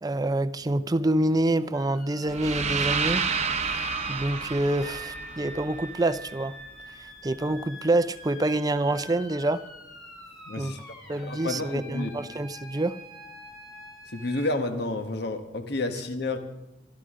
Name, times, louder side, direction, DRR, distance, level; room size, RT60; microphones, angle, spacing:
voice 1, 0.0-3.3 4.1-6.5 7.0-9.6 10.6-10.8 11.1-13.0, right 1 dB, 20° right, 0.5 m, -26 dB
sound 1, 1.7-14.5, left 1 dB, 20° left, 3.0 m, -46 dB
sound 2, 2.3-6.3, right 5 dB, 40° right, 0.8 m, -30 dB
voice 2, 10.4-10.8 11.3-12.1 14.1-16.4, left 2 dB, 65° left, 1.3 m, -30 dB
23.5 x 12.5 x 3.7 m
head